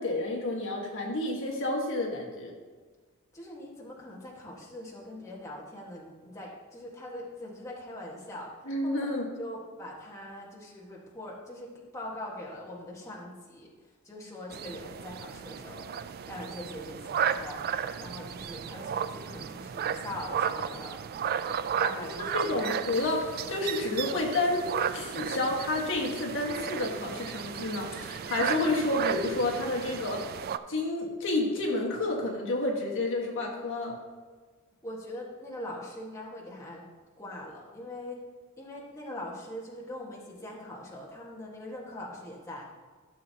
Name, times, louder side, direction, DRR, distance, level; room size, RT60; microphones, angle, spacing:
voice 1, 0.0-2.5 8.7-9.3 22.3-24.7 24.9-30.2 30.7-33.9, left 2 dB, 60° left, -1 dB, 1.4 m, -30 dB
voice 2, 3.3-8.5 8.8-9.1 9.4-13.7 14.0-15.9 16.3-17.6 18.0-21.0 21.8-22.7 34.8-36.8 37.2-38.2 38.6-42.7, left 1 dB, 15° left, -5 dB, 1.4 m, -42 dB
sound 1, 14.5-30.6, right 7 dB, 45° right, 0.3 m, -34 dB
13.5 x 6.9 x 2.8 m, 1.5 s
head